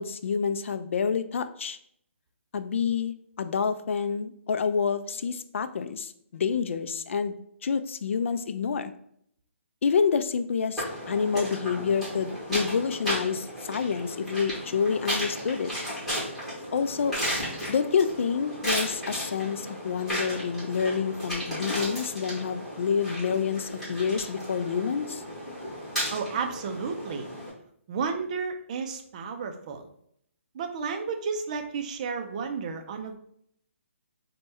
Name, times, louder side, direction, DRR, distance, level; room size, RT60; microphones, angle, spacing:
voice 1, 0.0-1.8 2.5-7.4 7.6-8.9 9.8-15.7 16.7-17.2 17.7-25.2, left 6 dB, 65° left, 11 dB, 0.3 m, -28 dB
sound 1, 10.8-27.5, equal, ahead, 1.4 m, -34 dB
voice 2, 26.1-27.3 27.9-29.9 30.5-33.2, right 5 dB, 30° right, 5 dB, 0.4 m, -32 dB
3.3 x 2.2 x 4.3 m, 0.69 s
hypercardioid pair, 160°, 7 cm